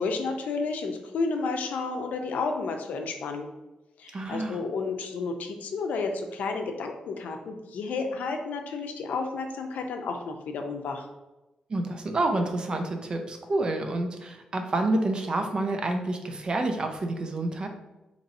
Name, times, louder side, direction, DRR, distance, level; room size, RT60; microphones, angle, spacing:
voice 1, 0.0-3.5 4.0-11.0, left 4 dB, 85° left, 4 dB, 0.5 m, -31 dB
voice 2, 4.1-4.6 11.7-17.7, right 2 dB, 35° right, 4 dB, 0.5 m, -28 dB
2.9 x 2.6 x 4.1 m, 1.0 s
wide cardioid pair, 140°, 3 cm